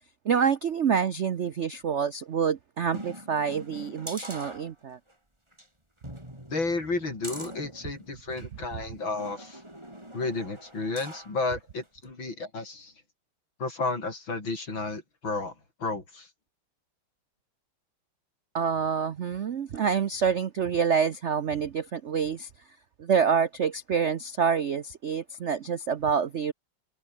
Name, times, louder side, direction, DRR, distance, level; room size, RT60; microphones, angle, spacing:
voice 1, 0.2-5.0 18.5-22.5 23.0-26.5, right 7 dB, 85° right, 0.6 m, -27 dB
sound 1, 2.9-5.1 5.5-5.7 6.0-8.5 9.2-11.4 11.8-11.9, right 1 dB, 10° right, 5.9 m, -43 dB
voice 2, 6.5-9.6 10.1-12.9 13.6-15.5 15.8-16.3, left 3 dB, 65° left, 6.3 m, -32 dB
omnidirectional pair, 2.3 m